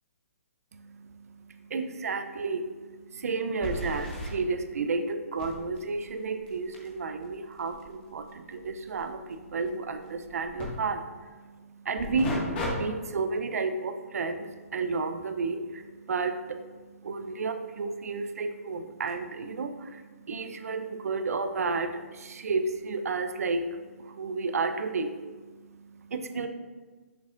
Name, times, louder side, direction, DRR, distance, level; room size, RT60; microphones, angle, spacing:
voice 1, 0.7-26.5, right 4 dB, 75° right, 8 dB, 0.6 m, -32 dB
sound 1, 1.8-1.9 2.2-2.3 3.6-4.3 5.4-10.7 12.0-12.7 13.1-13.4 18.0-18.1 19.1-19.2, left 2 dB, 45° left, 1.7 m, -38 dB
7.0 x 5.8 x 2.5 m, 1.4 s
hypercardioid pair, 145°, 8 cm